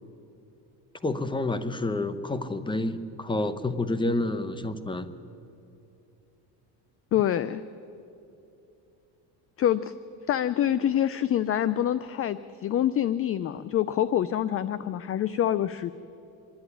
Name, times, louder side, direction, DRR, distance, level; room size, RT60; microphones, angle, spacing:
voice 1, 1.0-5.1, left 2 dB, 10° left, 12 dB, 0.9 m, -29 dB
voice 2, 7.1-7.6 9.6-9.9 10.3-15.9, left 11 dB, 30° left, 15 dB, 0.4 m, -26 dB
25.5 x 11.0 x 9.8 m, 2.8 s
cardioid pair, 120°, 46 cm